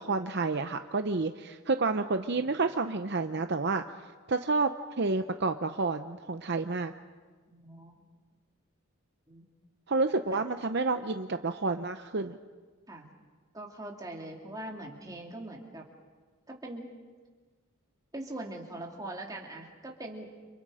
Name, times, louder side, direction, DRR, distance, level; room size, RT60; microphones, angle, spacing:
voice 1, 0.0-3.8 4.3-4.7 5.0-6.9 9.9-12.4, right 3 dB, 50° right, 8 dB, 0.7 m, -29 dB
voice 2, 7.5-7.9 9.3-9.5 10.3-10.4 12.9-13.1 13.5-15.9 16.5-16.9 18.1-20.3, right 1 dB, 15° right, 0 dB, 2.8 m, -42 dB
30.0 x 28.5 x 5.0 m, 1.4 s
head